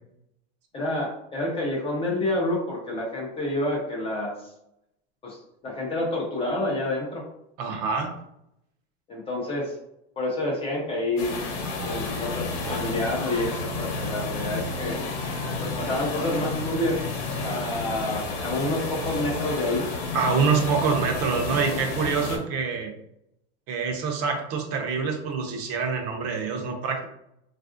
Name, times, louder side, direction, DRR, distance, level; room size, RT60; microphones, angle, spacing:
voice 1, 0.7-4.3 5.2-7.2 9.1-9.7 10.2-11.3 11.8-15.0 15.6-17.0 17.4-19.8, left 1 dB, 15° left, -2 dB, 0.4 m, -28 dB
voice 2, 7.6-8.2 20.1-22.9 23.7-27.1, right 5 dB, 45° right, 3 dB, 0.6 m, -26 dB
sound 1, 11.2-22.4, left 3 dB, 60° left, 0.9 m, -31 dB
3.3 x 2.4 x 2.4 m, 0.80 s
supercardioid pair, 140°, 35 cm